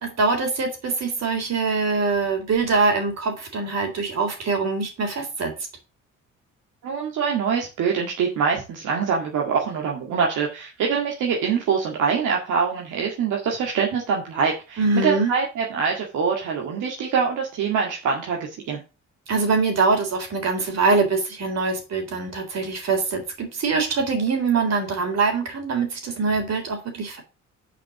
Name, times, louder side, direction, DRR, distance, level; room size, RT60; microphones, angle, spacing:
voice 1, 0.0-5.5 14.8-15.3 19.3-27.2, right 4 dB, 60° right, 4 dB, 3.7 m, -23 dB
voice 2, 6.8-18.8, right 6 dB, 80° right, -1 dB, 2.0 m, -24 dB
6.9 x 5.2 x 7.1 m, 0.30 s
cardioid pair, 90°, 30 cm